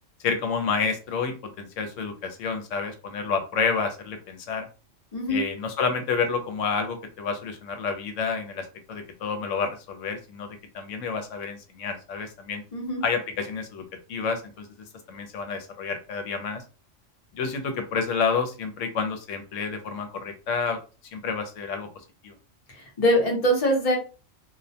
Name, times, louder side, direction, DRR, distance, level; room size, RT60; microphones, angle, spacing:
voice 1, 0.2-4.7 5.3-12.6 13.0-13.8 14.1-14.7 15.1-16.6 17.3-20.8 21.1-21.9 22.2-22.3, left 5 dB, 75° left, 6 dB, 0.9 m, -29 dB
voice 2, 23.0-24.0, equal, 35° left, 0 dB, 0.6 m, -22 dB
2.4 x 2.1 x 2.7 m, 0.34 s
omnidirectional pair, 1.3 m